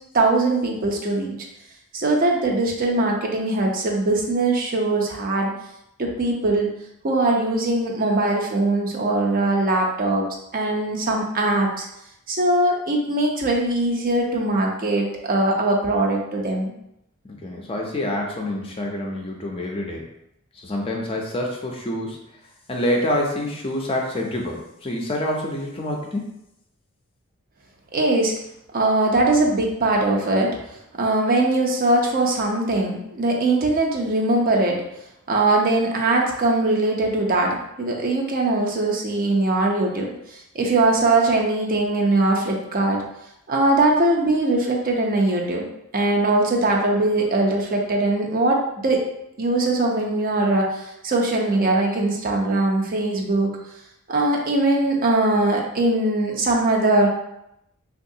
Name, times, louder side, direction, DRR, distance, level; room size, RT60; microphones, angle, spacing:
voice 1, 0.1-1.4 1.9-5.5 6.0-6.7 7.0-10.3 10.5-11.8 12.3-16.7 27.9-28.3 28.7-30.5 31.0-34.8 35.3-40.2 40.5-43.0 43.5-45.7 45.9-49.0 49.4-53.5 54.1-57.1, right 2 dB, 40° right, 0 dB, 0.5 m, -21 dB
voice 2, 17.3-20.1 20.5-22.2 22.7-26.4, left 1 dB, 25° left, 0 dB, 0.4 m, -27 dB
3.6 x 2.3 x 2.7 m, 0.81 s
head